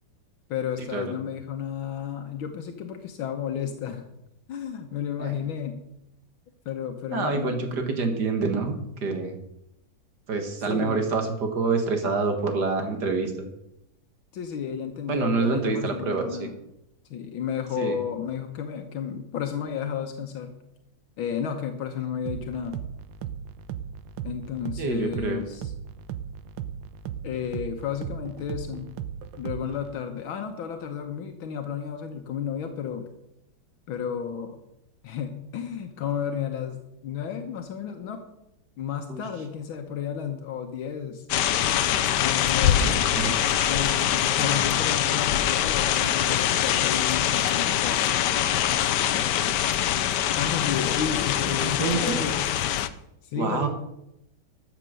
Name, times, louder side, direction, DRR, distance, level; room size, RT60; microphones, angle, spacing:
voice 1, 0.5-4.0 4.5-5.8 6.7-7.7 10.7-11.1 14.3-16.5 17.1-20.6 21.2-22.8 24.2-25.7 27.2-28.9 29.4-33.0 33.9-34.6 35.0-36.8 37.0-38.2 38.8-41.3 42.1-43.1 43.7-48.2 49.1-49.3 50.4-52.4 52.9-53.7, left 8 dB, 85° left, 5 dB, 1.9 m, -32 dB
voice 2, 7.1-9.3 10.3-13.5 15.1-16.5 17.8-18.0 24.8-25.5 39.1-39.2 42.8-43.3 44.4-44.6 51.5-52.2 53.4-53.7, right 4 dB, 55° right, 5 dB, 2.2 m, -27 dB
sound 1, 22.3-29.9, right 9 dB, 75° right, 1.4 m, -37 dB
sound 2, 41.3-52.9, left 11 dB, 70° left, 1.2 m, -24 dB
13.5 x 7.4 x 6.7 m, 0.83 s
omnidirectional pair, 2.2 m